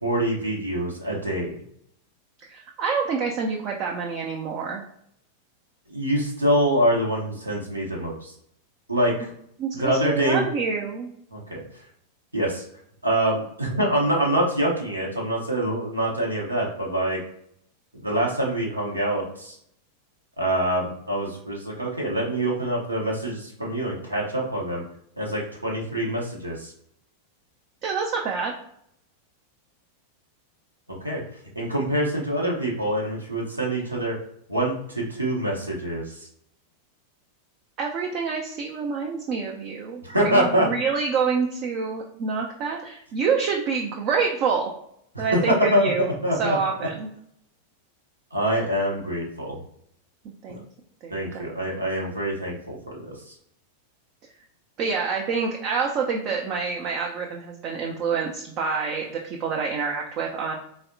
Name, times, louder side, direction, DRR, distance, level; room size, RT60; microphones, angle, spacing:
voice 1, 0.0-1.5 5.9-8.3 8.9-9.3 9.7-10.5 11.3-11.6 12.3-12.6 13.0-17.2 17.9-19.6 20.4-24.8 25.2-26.7 30.9-31.2 31.6-34.2 34.5-36.3 40.0-40.7 45.1-46.6 48.3-49.6 50.5-50.6 51.1-53.3, right 1 dB, 85° right, -3 dB, 0.7 m, -25 dB
voice 2, 2.4-4.8 9.6-11.1 27.8-28.5 37.8-44.7 45.2-46.1 46.4-47.1 50.4-50.6 51.0-51.5 54.8-60.5, right 5 dB, 40° right, 0 dB, 0.4 m, -27 dB
4.1 x 2.0 x 2.6 m, 0.70 s
figure-of-eight pair, 90°, 0 cm